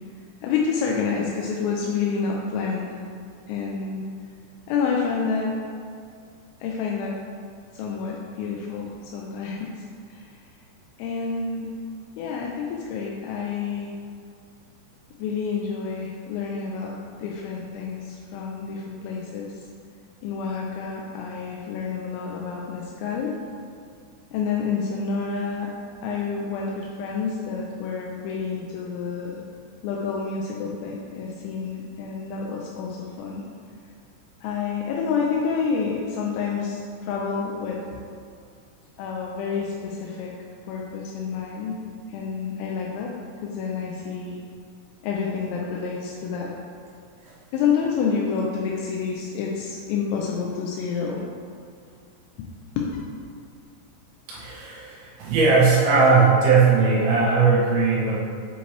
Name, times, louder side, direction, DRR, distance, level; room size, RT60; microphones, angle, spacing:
voice 1, 0.4-3.0 3.5-4.0 4.7-5.6 6.6-7.2 7.7-9.8 10.1-10.3 11.0-11.7 12.2-13.9 15.2-19.7 20.2-23.4 24.3-25.8 26.0-29.4 29.8-33.5 34.4-38.0 39.0-40.3 40.7-41.8 42.1-43.1 43.4-44.4 45.0-46.5 47.5-51.2 52.4-52.5 52.8-52.9, left 5 dB, 85° left, -2 dB, 3.2 m, -28 dB
voice 2, 54.3-58.2, right 4 dB, 70° right, -6 dB, 3.2 m, -18 dB
7.7 x 5.1 x 3.3 m, 2.2 s
omnidirectional pair, 6.0 m